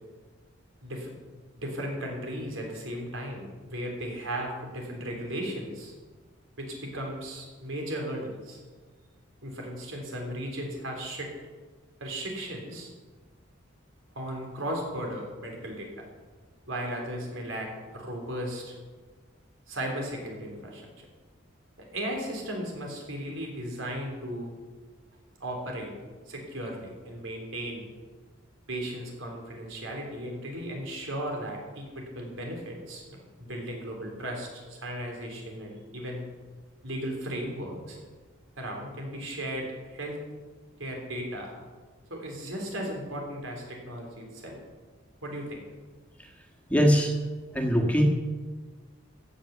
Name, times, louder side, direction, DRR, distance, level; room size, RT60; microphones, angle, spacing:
voice 1, 1.6-5.9 6.6-8.6 9.4-11.3 12.0-12.9 14.2-15.9 16.7-18.8 19.7-20.9 21.9-24.5 25.4-25.9 26.3-27.9 28.7-36.2 36.8-38.0 38.6-40.2 40.8-41.6 42.1-44.6 45.2-45.6, right 1 dB, 85° right, 1 dB, 3.7 m, -36 dB
voice 2, 46.7-47.1 47.5-48.0, equal, 5° left, 1 dB, 1.6 m, -22 dB
16.0 x 7.1 x 7.1 m, 1.4 s
head